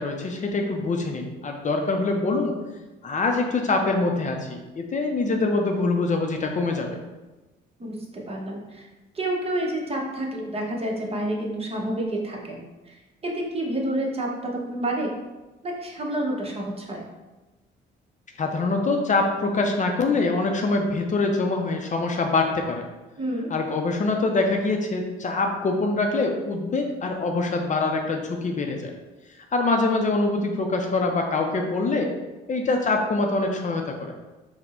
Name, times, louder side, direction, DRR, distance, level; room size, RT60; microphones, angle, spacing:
voice 1, 0.0-2.5 3.0-7.0 18.4-22.8 23.5-28.9 29.5-32.1 32.5-34.1, left 3 dB, 40° left, 3 dB, 0.5 m, -24 dB
voice 2, 7.8-8.9 9.1-15.1 15.6-17.0 23.2-23.5, right 1 dB, 30° right, -1 dB, 0.9 m, -29 dB
4.1 x 2.1 x 4.2 m, 1.1 s
cardioid pair, 90°, 20 cm